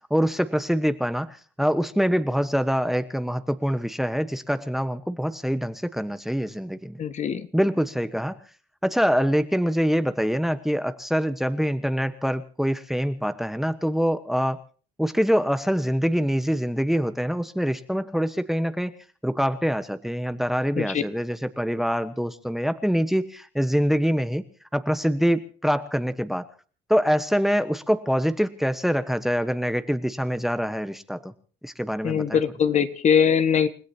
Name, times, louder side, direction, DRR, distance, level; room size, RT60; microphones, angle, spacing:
voice 1, 0.1-7.0 7.5-8.4 8.8-14.6 15.0-18.9 19.2-24.4 24.7-26.5 26.9-31.3 31.6-32.4, equal, ahead, 11 dB, 1.2 m, -25 dB
voice 2, 7.0-7.5 20.8-21.0 32.0-33.7, left 7 dB, 45° left, 10 dB, 1.7 m, -22 dB
30.0 x 17.0 x 2.9 m, 0.41 s
cardioid pair, 110°, 17 cm